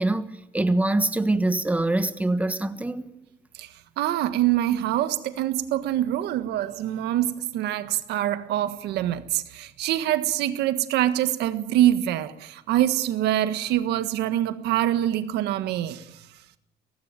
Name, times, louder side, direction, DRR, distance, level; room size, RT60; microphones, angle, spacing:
voice 1, 0.0-3.1, right 2 dB, 10° right, 1.4 m, -24 dB
voice 2, 4.0-16.0, right 12 dB, 80° right, 1.5 m, -25 dB
18.0 x 16.0 x 9.2 m
cardioid pair, 110°, 17 cm